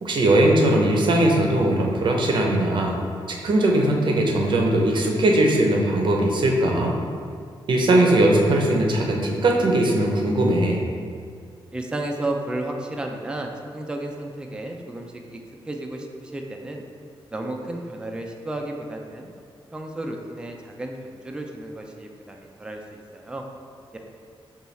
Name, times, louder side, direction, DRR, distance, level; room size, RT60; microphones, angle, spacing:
voice 1, 0.0-2.9 3.3-6.9 7.7-10.8, right 1 dB, 55° right, 0 dB, 0.6 m, -20 dB
voice 2, 11.7-15.4 15.7-16.8 17.3-19.3 19.7-23.4 23.9-24.0, right 1 dB, 10° right, 2 dB, 0.3 m, -33 dB
5.4 x 2.3 x 3.1 m, 2.2 s
wide cardioid pair, 135°, 9 cm